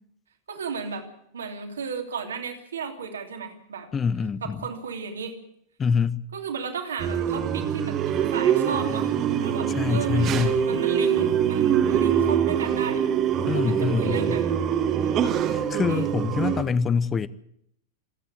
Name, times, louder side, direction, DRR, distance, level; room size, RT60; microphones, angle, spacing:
voice 1, 0.5-1.1 1.3-3.9 4.4-5.3 6.3-9.1 9.4-13.0 13.5-14.5 15.0-15.4 15.9-16.1, right 5 dB, 65° right, 3.0 m, -34 dB
voice 2, 3.9-4.6 5.8-6.2 9.8-10.6 13.5-14.4 15.5-17.3, left 6 dB, 20° left, 0.7 m, -25 dB
sound 1, 7.0-16.6, right 8 dB, 35° right, 2.0 m, -24 dB
27.0 x 9.7 x 9.9 m
figure-of-eight pair, 90°, 0 cm